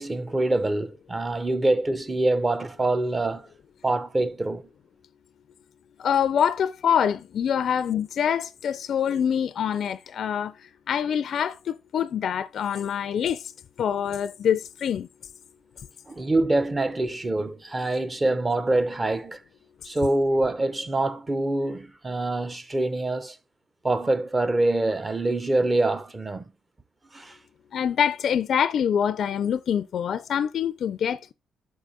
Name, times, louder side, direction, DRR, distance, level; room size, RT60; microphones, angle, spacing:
voice 1, 0.0-3.5 3.8-4.7 16.1-19.4 19.8-23.4 23.8-26.5 27.1-27.4, right 2 dB, 20° right, 0.7 m, -25 dB
voice 2, 6.0-10.5 10.9-13.4 13.8-15.1 27.7-31.3, left 8 dB, 60° left, 0.4 m, -25 dB
6.4 x 4.7 x 3.8 m
cardioid pair, 90°, 0 cm